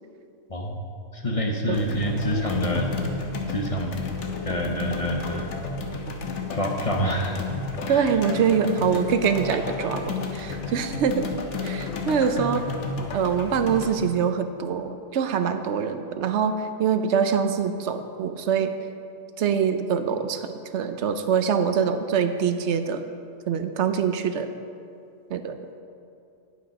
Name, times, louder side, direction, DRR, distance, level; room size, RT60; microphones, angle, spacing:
voice 1, 0.5-0.8 1.1-2.9 3.5-4.0 4.4-5.7 6.5-7.4 7.9-8.0, equal, 35° left, 1 dB, 0.8 m, -27 dB
sound 1, 1.7-13.9, left 3 dB, 80° left, 1.3 m, -32 dB
voice 2, 1.7-2.0 7.9-11.2 11.6-12.7 13.1-18.7 19.4-23.0 23.5-24.5 25.3-25.6, right 7 dB, 75° right, 9 dB, 0.9 m, -24 dB
10.5 x 8.2 x 5.2 m, 2.5 s
omnidirectional pair, 1.2 m